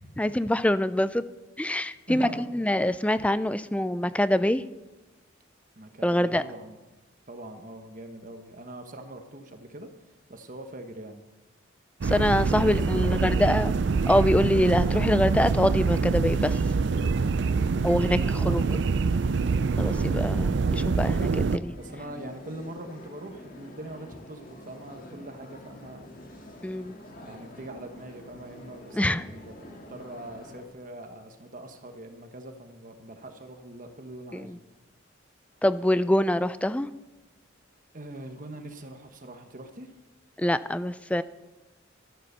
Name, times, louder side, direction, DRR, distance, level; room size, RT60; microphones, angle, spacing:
voice 1, 0.2-1.2 1.6-4.6 6.0-6.4 12.0-13.7 14.1-16.6 17.8-18.2 18.4-18.6 19.8-21.7 26.6-27.0 28.9-29.2 34.3-34.6 35.6-36.9 40.4-41.2, left 1 dB, 5° left, 14 dB, 0.4 m, -25 dB
voice 2, 2.1-2.4 5.8-6.8 7.3-9.9 10.3-11.2 12.5-13.4 18.1-18.9 21.7-26.1 27.2-34.6 37.9-40.0, right 1 dB, 40° right, 6 dB, 1.2 m, -42 dB
sound 1, 12.0-21.6, right 4 dB, 60° right, 0.4 m, -25 dB
sound 2, 12.8-30.7, left 1 dB, 45° left, 1.9 m, -47 dB
13.0 x 11.5 x 6.7 m, 1.1 s
head